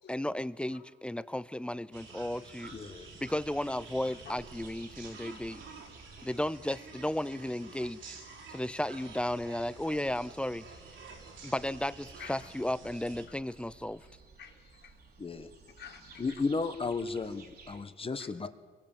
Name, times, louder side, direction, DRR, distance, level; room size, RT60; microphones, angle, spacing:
voice 1, 0.1-2.7 3.2-5.6 6.2-8.2 8.5-10.7 11.4-14.0, left 1 dB, 5° left, 17 dB, 0.7 m, -34 dB
sound 1, 1.9-13.3, right 4 dB, 80° right, 5.4 m, -50 dB
sound 2, 2.6-8.0 8.5-8.6 8.8-17.8, right 4 dB, 50° right, 3.1 m, -57 dB
voice 2, 2.7-3.1 15.2-15.5 16.2-18.5, left 4 dB, 30° left, 10 dB, 1.4 m, -34 dB
voice 3, 12.2-12.5 13.3-13.4 14.0-16.5 18.2-18.5, left 7 dB, 60° left, 2 dB, 3.7 m, -52 dB
24.5 x 22.5 x 7.4 m, 1.5 s
cardioid pair, 90°, 20 cm